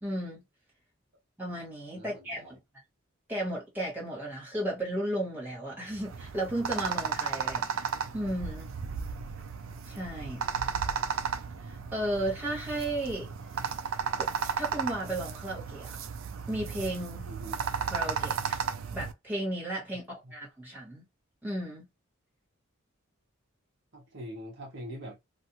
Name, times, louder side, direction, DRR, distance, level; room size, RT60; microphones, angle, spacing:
voice 1, 0.0-0.4 1.4-2.6 3.3-7.8 8.1-8.7 9.9-10.4 11.7-13.3 14.1-14.3 14.6-16.0 16.5-17.3 17.8-18.6 18.9-21.0 21.4-21.8, right 1 dB, 10° right, 1.3 m, -34 dB
voice 2, 1.9-2.6 17.3-17.5 20.2-20.3 23.9-25.2, equal, 55° right, 0.8 m, -43 dB
sound 1, 5.9-19.1, right 6 dB, 70° right, 0.4 m, -34 dB
2.5 x 2.4 x 2.8 m
head